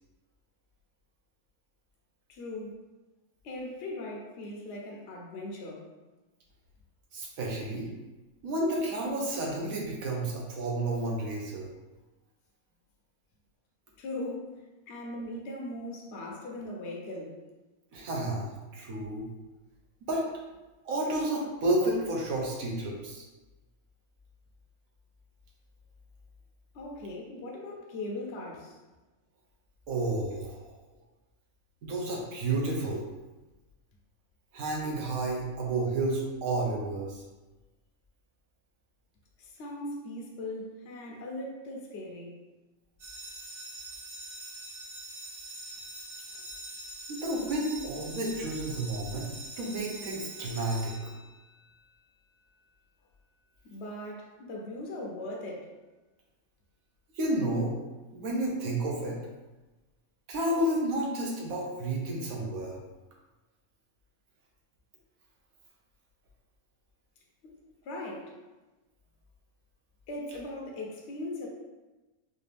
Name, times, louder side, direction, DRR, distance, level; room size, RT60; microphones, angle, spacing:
voice 1, 2.3-2.8 3.4-5.9 14.0-14.5 14.9-17.4 26.7-28.8 39.4-42.4 53.7-55.7 67.4-67.6 67.8-68.4 70.1-71.5, left 1 dB, 60° left, -1 dB, 0.9 m, -39 dB
voice 2, 7.1-7.9 8.4-11.7 17.9-19.3 20.0-20.2 20.8-23.2 29.9-30.7 31.8-33.0 34.5-37.2 47.1-49.3 49.6-50.9 57.1-57.7 58.1-59.2 60.3-62.8, right 1 dB, 75° right, -2 dB, 1.3 m, -31 dB
sound 1, 43.0-51.7, right 1 dB, 45° right, 0.9 m, -44 dB
4.2 x 2.6 x 3.3 m, 1.1 s
omnidirectional pair, 1.5 m